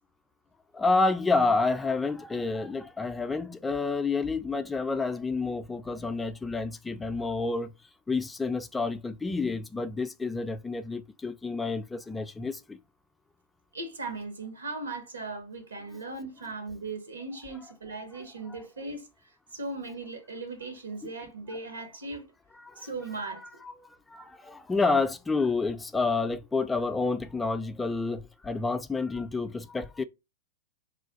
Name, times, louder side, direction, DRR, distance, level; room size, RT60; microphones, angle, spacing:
voice 1, 0.7-7.7 8.1-12.8 18.5-18.6 21.0-21.1 22.6-22.9 23.6-30.0, left 3 dB, 10° left, 0.3 m, -29 dB
voice 2, 13.7-19.1 19.5-22.3 22.8-23.4, right 3 dB, 80° right, 1.0 m, -38 dB
2.4 x 2.3 x 3.8 m
figure-of-eight pair, 105°, 0 cm